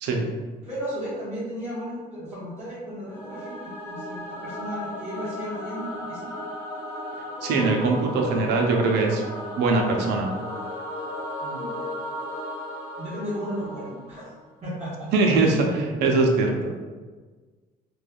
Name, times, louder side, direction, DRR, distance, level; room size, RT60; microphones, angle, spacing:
voice 1, 0.6-6.3 11.4-11.7 13.0-14.3 14.6-15.1, equal, 40° right, -11 dB, 1.1 m, -34 dB
Singing / Musical instrument, 3.1-14.4, left 1 dB, 15° left, 0.9 m, -35 dB
voice 2, 7.4-9.2 9.6-10.3 15.1-16.7, right 3 dB, 85° right, 2 dB, 0.5 m, -22 dB
3.2 x 2.2 x 2.3 m, 1.4 s
cardioid pair, 110°, 17 cm